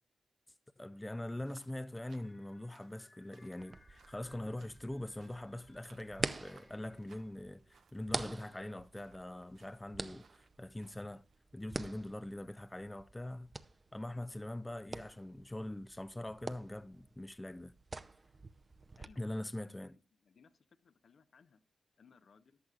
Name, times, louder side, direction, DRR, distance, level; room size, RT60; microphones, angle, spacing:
voice 1, 0.8-11.2 11.5-13.6 13.9-17.7 19.2-20.0, left 1 dB, 15° left, 0.5 m, -43 dB
sound 1, 1.4-11.4, right 6 dB, 75° right, 0.8 m, -69 dB
sound 2, 2.2-7.3, left 2 dB, 35° left, 1.4 m, -67 dB
sound 3, 3.6-19.1, right 3 dB, 35° right, 0.6 m, -46 dB
voice 2, 19.0-19.3 19.9-21.6 22.0-22.6, left 5 dB, 65° left, 0.9 m, -64 dB
14.5 x 10.5 x 2.4 m
supercardioid pair, 50°, 0 cm